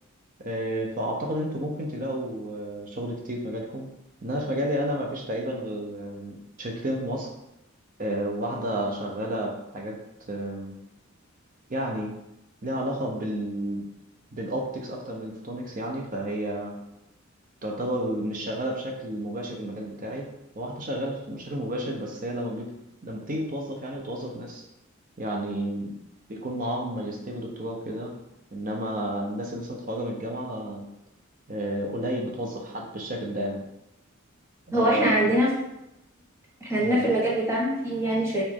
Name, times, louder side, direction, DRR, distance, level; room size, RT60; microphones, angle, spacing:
voice 1, 0.4-3.9 4.2-7.3 8.0-10.0 10.3-10.8 11.7-12.1 12.6-13.9 14.3-16.7 17.6-20.2 20.6-22.7 23.0-24.6 25.2-25.9 26.3-28.1 28.5-30.8 31.5-33.6 34.7-35.3 36.8-37.1, right 1 dB, 40° right, 0 dB, 0.7 m, -31 dB
voice 2, 34.7-35.5 36.6-38.4, right 1 dB, 15° right, -5 dB, 1.1 m, -23 dB
4.9 x 2.6 x 3.7 m, 0.89 s
head